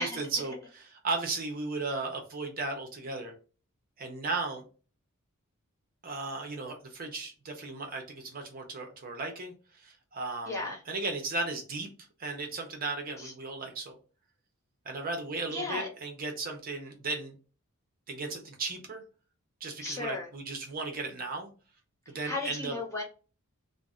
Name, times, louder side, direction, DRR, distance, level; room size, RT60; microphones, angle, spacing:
voice 1, 0.0-3.3 4.0-4.6 6.0-11.9 12.2-14.0 14.8-17.4 18.1-19.0 19.6-21.5 22.1-22.7, right 3 dB, 40° right, 3 dB, 0.6 m, -36 dB
voice 2, 10.5-10.8 13.2-13.3 15.5-15.9 19.8-20.3 22.2-23.0, left 2 dB, 15° left, -2 dB, 0.7 m, -35 dB
2.5 x 2.0 x 3.5 m, 0.36 s
head